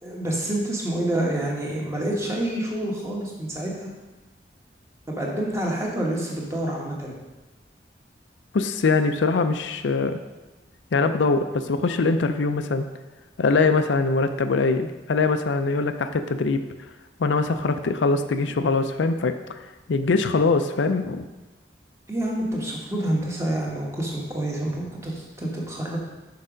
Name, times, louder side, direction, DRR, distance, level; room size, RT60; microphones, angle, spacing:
voice 1, 0.0-3.9 5.1-7.1 22.1-26.0, right 1 dB, 15° right, -2 dB, 1.2 m, -28 dB
voice 2, 8.5-10.2 10.9-12.9 13.4-16.6 17.2-19.6 19.9-21.2, left 4 dB, 85° left, 8 dB, 0.5 m, -22 dB
6.6 x 4.8 x 5.1 m, 1.1 s
head